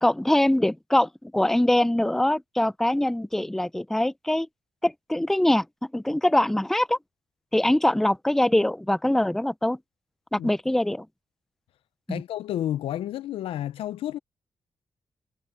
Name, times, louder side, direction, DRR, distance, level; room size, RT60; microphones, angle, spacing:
voice 1, 0.0-4.5 4.8-7.0 7.5-9.8 10.3-11.1 12.1-12.2, left 1 dB, 5° left, 0.5 m, -23 dB
voice 2, 12.1-14.2, left 12 dB, 85° left, 0.6 m, -30 dB
cardioid pair, 95°, 9 cm